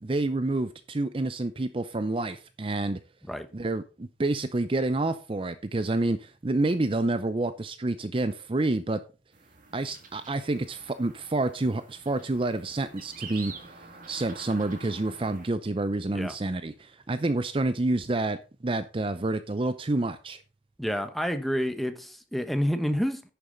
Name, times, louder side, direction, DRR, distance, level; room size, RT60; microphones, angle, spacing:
voice 1, 0.0-3.0 3.5-9.0 9.7-13.7 14.1-18.4 18.6-20.4, right 2 dB, 30° right, 0.5 m, -28 dB
sound 1, 9.3-15.5, right 4 dB, 50° right, 1.9 m, -47 dB
voice 2, 20.8-23.2, equal, ahead, 0.9 m, -28 dB
10.5 x 6.9 x 3.9 m
head